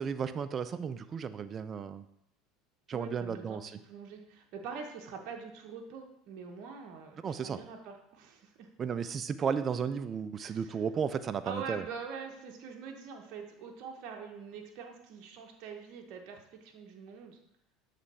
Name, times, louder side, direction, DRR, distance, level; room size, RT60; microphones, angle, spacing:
voice 1, 0.0-2.0 2.9-3.7 7.2-7.6 8.8-11.8, right 6 dB, 35° right, 12 dB, 0.4 m, -34 dB
voice 2, 2.9-8.7 10.4-10.8 11.4-17.4, right 5 dB, 60° right, 2 dB, 0.8 m, -44 dB
7.1 x 3.3 x 4.1 m, 0.78 s
hypercardioid pair, 85°, 0 cm